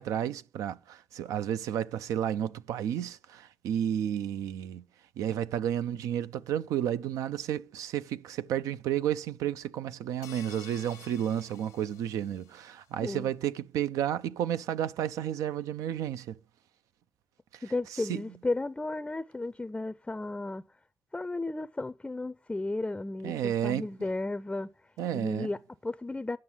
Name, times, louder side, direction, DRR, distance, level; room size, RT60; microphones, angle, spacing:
voice 1, 0.0-4.8 5.2-16.4 17.5-17.6 17.9-18.2 23.2-23.9 25.0-25.5, right 10 dB, 85° right, 0.5 m, -32 dB
sound 1, 10.2-12.7, left 11 dB, 90° left, 0.9 m, -51 dB
voice 2, 17.6-20.6 21.1-24.7 25.1-26.4, left 2 dB, 15° left, 0.5 m, -34 dB
9.7 x 6.2 x 7.2 m
cardioid pair, 65°, 6 cm